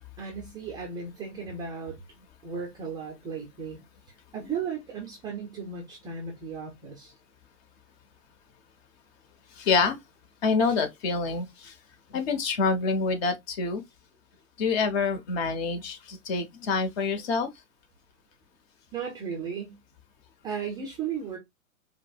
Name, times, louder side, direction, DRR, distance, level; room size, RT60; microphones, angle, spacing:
voice 1, 0.2-2.0 2.4-3.8 4.3-7.1 18.9-19.8 20.4-21.4, right 6 dB, 10° right, 0.4 m, -35 dB
voice 2, 9.6-10.0 10.4-11.7 12.1-13.8 14.6-17.5, left 4 dB, 45° left, 1.0 m, -26 dB
4.9 x 2.0 x 2.3 m
hypercardioid pair, 115°, 42 cm